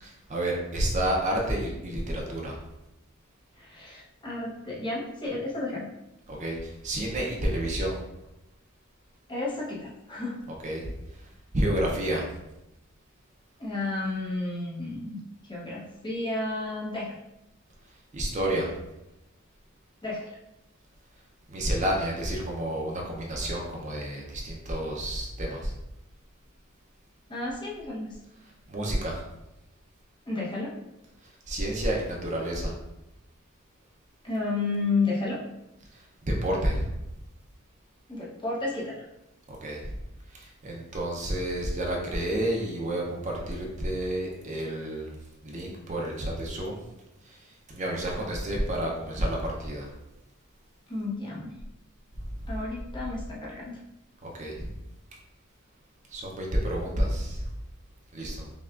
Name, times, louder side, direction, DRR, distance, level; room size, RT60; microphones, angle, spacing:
voice 1, 0.0-2.6 6.3-8.0 10.5-10.8 11.5-12.3 18.1-18.7 21.5-25.7 28.7-29.2 31.5-32.7 35.9-36.9 39.5-39.9 40.3-45.2 45.4-46.8 47.3-49.9 54.2-54.7 56.1-57.5 58.1-58.5, right 1 dB, 35° right, -1 dB, 0.6 m, -30 dB
voice 2, 3.6-5.9 9.3-10.4 13.6-15.2 15.5-17.1 20.0-20.4 27.3-28.2 30.3-30.7 34.2-35.4 38.1-39.0 50.9-51.5 52.5-53.8, left 3 dB, 20° left, -5 dB, 0.8 m, -32 dB
5.5 x 2.3 x 2.4 m, 0.92 s
head